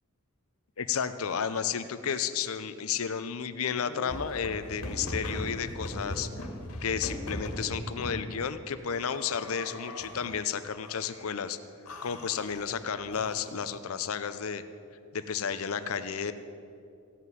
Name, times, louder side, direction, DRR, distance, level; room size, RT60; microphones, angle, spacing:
voice 1, 0.8-6.3 6.8-11.6 12.0-14.6 15.1-16.3, left 7 dB, 70° left, 11 dB, 0.6 m, -32 dB
sound 1, 3.8-8.2 9.1-10.4 10.8-11.4 11.9-13.7, left 1 dB, 85° left, 1.9 m, -39 dB
15.5 x 5.8 x 9.4 m, 2.5 s
head